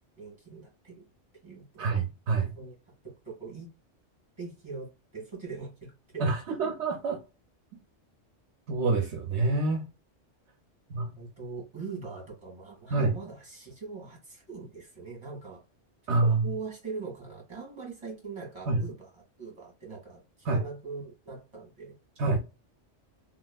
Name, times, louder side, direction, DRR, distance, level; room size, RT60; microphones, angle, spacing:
voice 1, 0.2-1.1 1.4-1.9 2.6-2.7 3.0-3.7 4.4-6.6 11.1-15.6 16.0-20.2 20.5-21.9, right 4 dB, 25° right, 1.7 m, -42 dB
voice 2, 1.8-2.5 6.2-7.2 8.7-9.8 10.9-11.1 12.9-13.2 16.1-16.5 18.7-18.8 20.4-20.6 22.2-22.4, right 3 dB, 70° right, 0.9 m, -26 dB
3.1 x 2.8 x 2.3 m
omnidirectional pair, 1.2 m